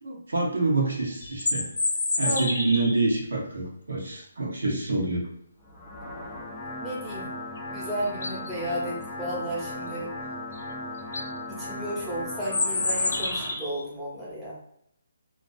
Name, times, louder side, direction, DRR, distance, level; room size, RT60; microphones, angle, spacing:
voice 1, 0.0-1.7 2.2-5.2, right 3 dB, 80° right, -2 dB, 0.8 m, -27 dB
sound 1, 1.2-3.0 7.6-7.7 8.1-8.5 10.5-10.6 11.0-11.3 12.4-13.8, left 2 dB, 70° left, 0.5 m, -28 dB
sound 2, 5.6-13.6, left 2 dB, 10° left, 0.4 m, -37 dB
voice 2, 6.8-7.3 7.7-10.1 11.6-14.6, right 1 dB, 5° right, -8 dB, 0.8 m, -33 dB
2.4 x 2.3 x 2.4 m, 0.73 s
hypercardioid pair, 150°, 0 cm